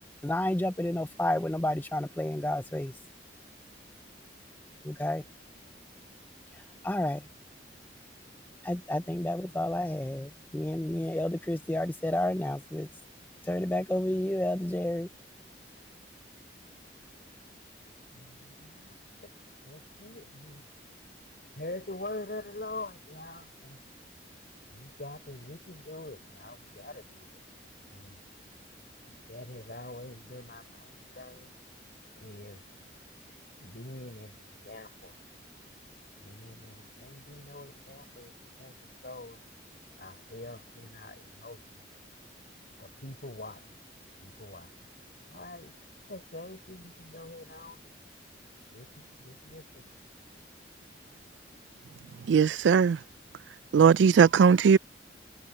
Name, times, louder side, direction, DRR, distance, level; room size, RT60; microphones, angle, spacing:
voice 1, 0.2-2.9 4.8-5.2 6.8-7.2 8.6-12.9 13.4-15.1, left 1 dB, 10° left, 0.5 m, -30 dB
voice 2, 18.1-18.9 19.2-19.3 19.6-20.7 21.6-23.8 24.7-27.4 27.9-28.2 29.0-31.5 32.2-32.6 33.6-35.2 36.2-38.3 38.6-39.4 40.0-41.6 42.8-43.8 44.2-44.7 45.3-45.7 46.1-47.9 48.7-49.8, left 2 dB, 55° left, 4.2 m, -44 dB
voice 3, 52.3-53.0 53.7-54.8, right 6 dB, 85° right, 0.3 m, -19 dB
head